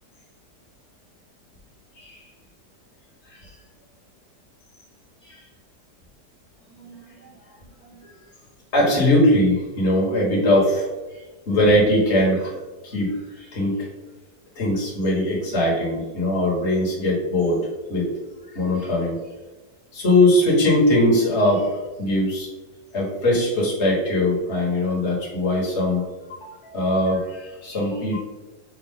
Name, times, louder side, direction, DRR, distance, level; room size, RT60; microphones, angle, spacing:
voice 1, 6.7-7.3 7.8-8.1 8.7-10.9 11.1-12.5 12.8-13.9 14.5-17.6 17.9-18.1 18.5-19.2 19.9-22.5 22.9-28.2, left 1 dB, 45° left, -4 dB, 1.6 m, -21 dB
6.4 x 2.3 x 3.6 m, 1.2 s
omnidirectional pair, 1.7 m